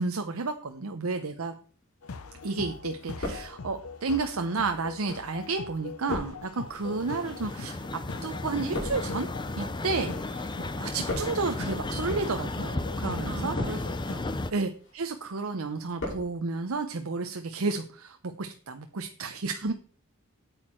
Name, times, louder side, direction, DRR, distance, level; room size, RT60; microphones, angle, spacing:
voice 1, 0.0-1.5 2.4-7.9 8.2-9.3 9.6-13.5 14.5-19.7, right 4 dB, 85° right, 6 dB, 0.8 m, -31 dB
sound 1, 2.0-14.1, left 4 dB, 85° left, 0.6 m, -42 dB
sound 2, 2.1-2.6 2.9-4.0 4.7-10.3 10.6-11.6 12.3-12.6 13.3-14.1 14.5-15.0 15.3-16.3 16.5-16.6, left 1 dB, 60° left, 5.6 m, -39 dB
sound 3, 6.6-14.5, left 2 dB, 20° left, 0.6 m, -34 dB
voice 2, 13.2-14.4 19.6-19.7, right 1 dB, 60° right, 8 dB, 1.4 m, -40 dB
8.7 x 8.1 x 4.5 m, 0.42 s
head